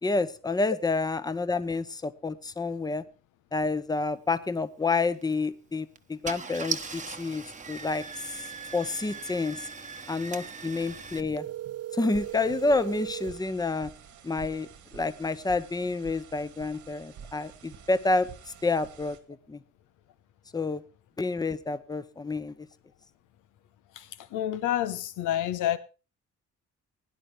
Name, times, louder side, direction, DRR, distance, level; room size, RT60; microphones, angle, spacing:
voice 1, 0.0-3.0 3.5-8.4 8.7-9.7 10.1-11.5 11.9-13.9 14.2-18.3 18.6-19.2 19.5-19.6 20.5-20.8 21.2-22.5, left 3 dB, 15° left, 0.8 m, -29 dB
Car / Engine starting, 5.1-5.4 6.0-6.1 6.2-11.2, right 5 dB, 25° right, 1.0 m, -39 dB
sound 1, 11.3-13.4, right 13 dB, 55° right, 0.5 m, -37 dB
sound 2, 12.1-19.2, right 7 dB, 80° right, 1.8 m, -49 dB
voice 2, 24.0-25.8, left 12 dB, 90° left, 1.1 m, -29 dB
16.5 x 10.0 x 3.4 m
cardioid pair, 90°, 30 cm